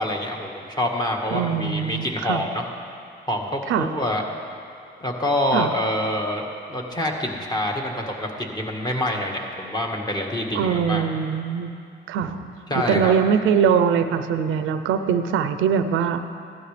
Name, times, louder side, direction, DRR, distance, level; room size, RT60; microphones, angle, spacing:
voice 1, 0.0-2.6 3.2-4.2 5.0-11.0 12.7-13.1, left 1 dB, 20° left, 0 dB, 1.7 m, -26 dB
voice 2, 1.3-2.4 3.7-3.9 5.5-5.7 10.5-11.7 12.1-12.5 12.9-16.2, right 7 dB, 85° right, 10 dB, 0.6 m, -22 dB
15.5 x 12.0 x 3.4 m, 2.5 s
cardioid pair, 90°, 20 cm